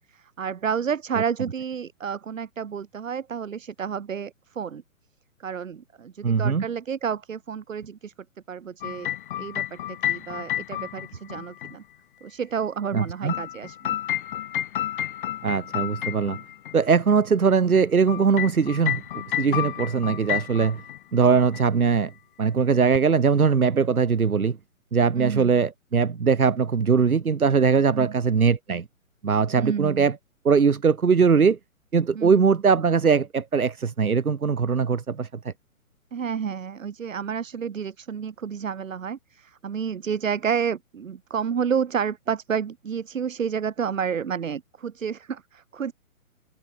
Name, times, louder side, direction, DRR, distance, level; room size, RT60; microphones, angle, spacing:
voice 1, 0.1-4.8 5.4-8.1 8.5-9.1 9.4-11.8 12.2-14.0 25.2-25.5 27.9-28.1 29.6-30.1 32.1-32.4 36.1-45.9, right 7 dB, 65° right, 7.4 m, -30 dB
voice 2, 6.2-6.6 12.9-13.3 15.4-16.4 16.7-19.0 19.3-20.8 21.1-22.1 22.4-24.6 24.9-28.8 29.2-30.2 30.4-31.6 31.9-35.5, right 5 dB, 85° right, 6.6 m, -21 dB
sound 1, 8.8-11.7 13.0-16.7 17.7-21.0 21.2-21.6 22.9-23.0, left 12 dB, 35° left, 4.6 m, -31 dB
hypercardioid pair, 160°, 42 cm